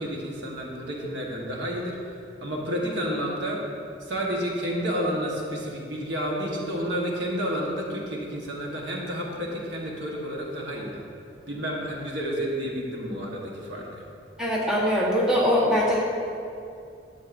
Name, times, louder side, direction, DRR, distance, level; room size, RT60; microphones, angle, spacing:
voice 1, 0.0-2.1 2.4-3.6 4.0-11.0 11.5-14.0, equal, 65° right, -2 dB, 1.2 m, -30 dB
voice 2, 14.4-16.0, equal, 5° right, -6 dB, 1.1 m, -22 dB
11.0 x 7.3 x 2.6 m, 2.5 s
head